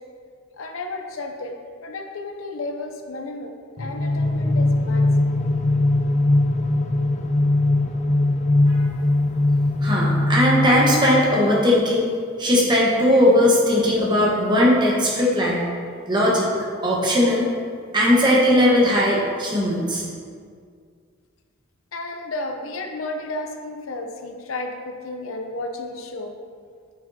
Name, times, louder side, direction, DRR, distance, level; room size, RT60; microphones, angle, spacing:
voice 1, 0.6-1.5 1.8-3.5 3.8-5.5 21.9-26.3, left 2 dB, 80° left, 4 dB, 0.6 m, -32 dB
sound 1, 3.8-11.7, left 2 dB, 35° left, 0.4 m, -20 dB
voice 2, 9.8-12.1 12.4-15.6 16.1-16.5 16.8-17.5 17.9-20.0, left 1 dB, 20° right, -4 dB, 1.2 m, -18 dB
8.6 x 6.0 x 2.8 m, 2.1 s
head